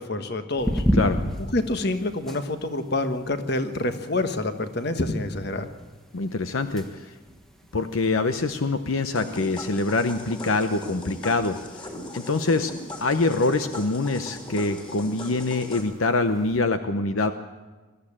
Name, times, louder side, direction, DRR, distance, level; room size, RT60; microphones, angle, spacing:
voice 1, 0.0-0.8 1.4-5.7, left 2 dB, 50° left, 8 dB, 1.4 m, -27 dB
sound 1, 0.6-16.6, equal, ahead, 1.5 m, -35 dB
voice 2, 6.1-6.9 7.7-11.6 12.1-12.7 13.0-17.3, left 3 dB, 75° left, 9 dB, 0.9 m, -24 dB
sound 2, 9.1-15.8, left 1 dB, 25° left, 3.3 m, -39 dB
21.5 x 14.0 x 8.7 m, 1.3 s
head